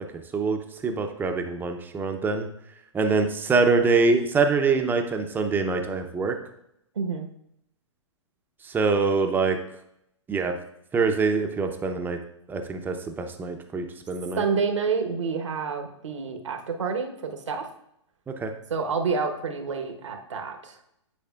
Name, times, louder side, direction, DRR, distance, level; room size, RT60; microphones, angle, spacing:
voice 1, 0.3-2.5 2.9-6.4 8.6-9.6 10.3-10.6 10.9-12.2 12.5-14.4 18.3-18.5, right 4 dB, 10° right, 5 dB, 0.6 m, -24 dB
voice 2, 6.9-7.3 14.4-17.6 18.7-20.8, right 5 dB, 75° right, 4 dB, 1.1 m, -28 dB
9.4 x 4.8 x 2.4 m, 0.79 s
hypercardioid pair, 120°, 16 cm